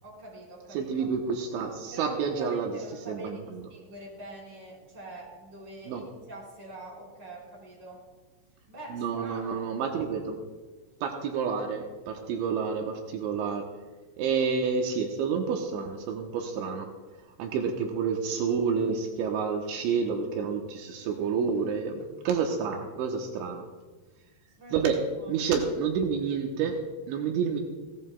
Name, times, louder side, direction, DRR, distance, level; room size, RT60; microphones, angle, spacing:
voice 1, 0.0-1.1 1.9-3.4 3.7-8.1 8.7-9.6 24.6-24.9 25.2-25.3, right 2 dB, 25° right, -4 dB, 4.6 m, -44 dB
voice 2, 0.7-3.7 5.9-6.0 8.9-10.4 11.0-13.6 14.2-16.9 17.4-23.6 24.7-27.6, right 6 dB, 85° right, 2 dB, 3.2 m, -29 dB
18.5 x 16.5 x 2.3 m, 1.3 s
omnidirectional pair, 5.4 m